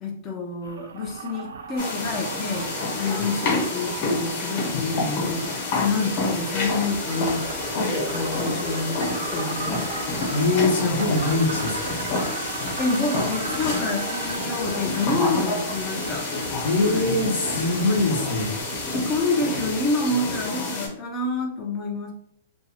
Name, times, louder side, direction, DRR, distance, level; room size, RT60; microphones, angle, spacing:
voice 1, 0.0-2.7 3.0-7.4 7.7-9.8 12.8-16.3 16.8-17.1 18.8-22.1, left 2 dB, 20° left, -1 dB, 0.4 m, -28 dB
sound 1, 0.6-19.2, right 5 dB, 85° right, 0.3 m, -37 dB
sound 2, 1.8-20.9, left 3 dB, 45° left, 1.0 m, -28 dB
voice 2, 10.3-12.0 16.6-18.6, left 2 dB, 80° left, 1 dB, 0.8 m, -23 dB
Domestic sounds home sounds, 11.1-18.6, right 4 dB, 45° right, 0.6 m, -45 dB
2.6 x 2.3 x 2.8 m, 0.68 s
hypercardioid pair, 155°, 0 cm